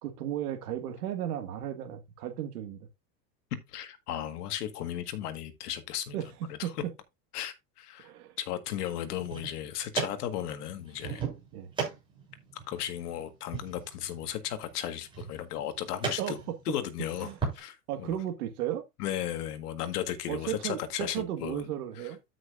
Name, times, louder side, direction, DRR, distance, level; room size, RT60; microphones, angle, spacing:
voice 1, 0.0-2.9 6.1-6.3 6.6-6.7 8.0-8.4 11.5-11.7 16.2-16.3 17.2-17.4 17.9-18.8 20.3-22.2, right 11 dB, 65° right, 1.8 m, -34 dB
voice 2, 3.7-6.2 6.5-6.8 7.3-8.1 8.4-11.2 12.7-16.4 16.6-17.3 17.5-18.2 19.0-21.6 22.0-22.1, left 11 dB, 65° left, 1.7 m, -35 dB
sound 1, 9.0-17.6, right 5 dB, 10° right, 7.0 m, -38 dB
13.0 x 6.3 x 2.5 m
supercardioid pair, 170°, 49 cm